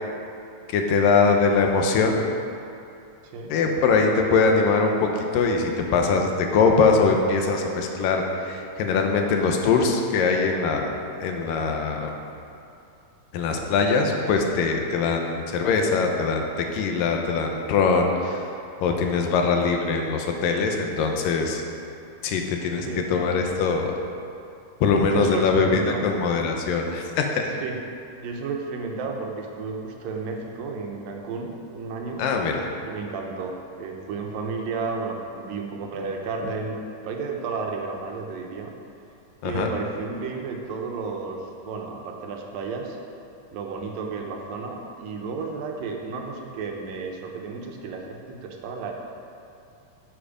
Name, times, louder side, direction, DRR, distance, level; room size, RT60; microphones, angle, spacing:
voice 1, 0.7-2.2 3.5-10.9 11.2-12.1 13.3-18.4 18.8-21.6 22.2-23.9 24.8-27.5 32.2-32.7 39.4-39.7, left 4 dB, 85° left, 3 dB, 2.6 m, -22 dB
voice 2, 25.0-26.0 27.6-27.8 28.2-32.2 32.8-36.8 37.0-38.7 39.4-43.0 43.5-48.9, right 4 dB, 90° right, 1 dB, 2.8 m, -32 dB
11.5 x 7.8 x 5.1 m, 2.6 s
omnidirectional pair, 3.9 m